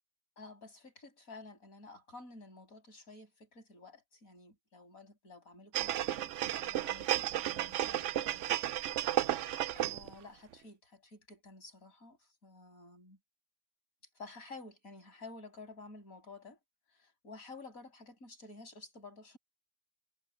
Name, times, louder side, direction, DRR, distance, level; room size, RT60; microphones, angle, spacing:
voice 1, 0.4-8.6 9.1-13.2 14.2-16.6 16.9-19.4, left 3 dB, 80° left, 7.4 m, -52 dB
sound 1, 5.7-10.1 10.5-10.6, right 12 dB, 65° right, 0.9 m, -33 dB
omnidirectional pair, 1.5 m